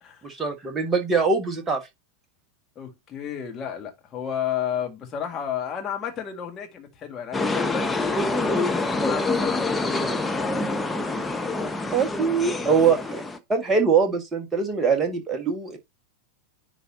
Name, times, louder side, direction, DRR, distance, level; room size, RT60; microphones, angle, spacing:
voice 1, 0.2-1.8 11.9-13.2 13.5-15.8, right 5 dB, 15° right, 1.5 m, -23 dB
voice 2, 2.8-10.8 12.6-12.8, left 9 dB, 25° left, 1.7 m, -33 dB
sound 1, 7.3-13.4, left 2 dB, 10° left, 0.8 m, -26 dB
9.9 x 3.9 x 2.7 m
figure-of-eight pair, 90°, 0 cm